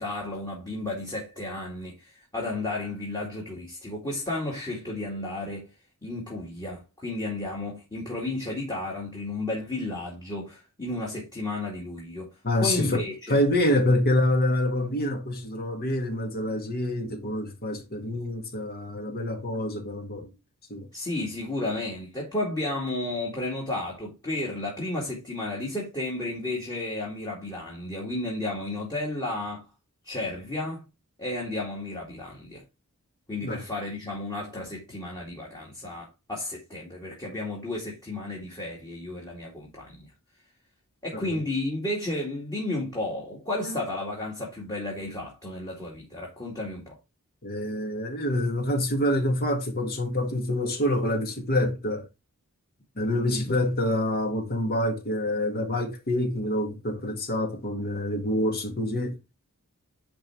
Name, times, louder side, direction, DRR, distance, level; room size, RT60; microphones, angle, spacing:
voice 1, 0.0-5.7 6.0-12.4 12.6-13.4 20.9-29.6 30.0-30.9 31.2-32.6 33.3-40.1 41.0-46.9, left 2 dB, 20° left, 2.3 m, -33 dB
voice 2, 12.4-20.3 20.7-20.9 33.4-33.6 41.1-41.4 43.7-43.8 47.4-52.1 53.0-59.2, left 1 dB, 45° left, 2.0 m, -26 dB
10.0 x 3.6 x 4.4 m
head